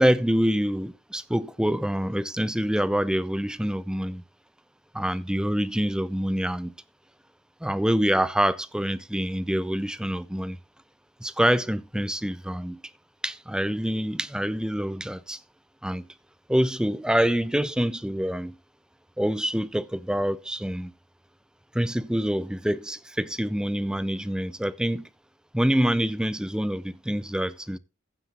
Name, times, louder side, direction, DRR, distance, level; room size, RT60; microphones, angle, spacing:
voice 1, 0.0-4.2 4.9-6.7 7.6-10.6 11.2-12.8 13.2-15.4 15.8-16.1 16.5-18.5 19.2-20.9 21.7-25.1 25.5-27.8, equal, 5° right, 0.5 m, -26 dB
15.0 x 7.6 x 2.9 m
head